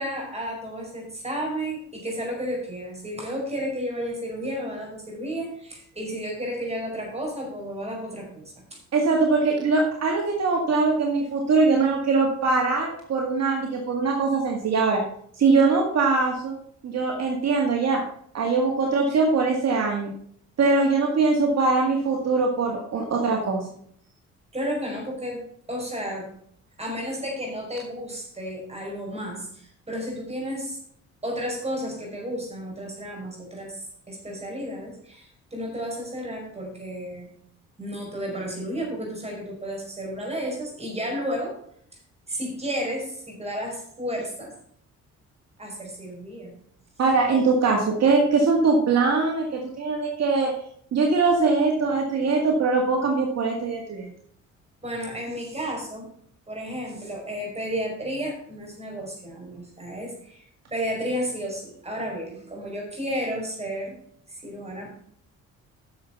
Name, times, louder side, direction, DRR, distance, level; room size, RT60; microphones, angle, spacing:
voice 1, 0.0-8.4 8.7-8.8 24.5-26.3 26.8-30.8 31.2-33.8 34.1-37.3 37.8-41.6 42.3-44.5 45.6-46.5 54.8-56.1 56.5-63.9 64.3-64.9, equal, 20° right, 0 dB, 5.4 m, -32 dB
voice 2, 8.9-15.0 15.4-16.5 16.8-18.0 18.3-20.1 20.6-23.6 47.0-50.5 50.9-54.1, right 4 dB, 60° right, 1 dB, 2.0 m, -22 dB
10.0 x 6.9 x 5.8 m, 0.64 s
cardioid pair, 90°, 30 cm